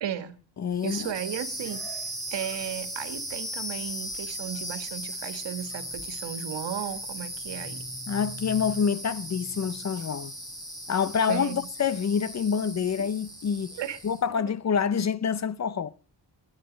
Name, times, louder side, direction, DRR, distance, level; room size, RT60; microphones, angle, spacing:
voice 1, 0.0-0.4 0.8-1.8 2.3-7.8 11.3-11.7 13.8-14.0, right 10 dB, 80° right, 1.7 m, -35 dB
voice 2, 0.6-1.1 8.1-10.3 10.9-13.8 14.0-15.9, left 7 dB, 40° left, 0.6 m, -27 dB
sound 1, 0.7-14.3, equal, 10° left, 4.6 m, -37 dB
21.0 x 9.0 x 5.1 m
wide cardioid pair, 145°, 42 cm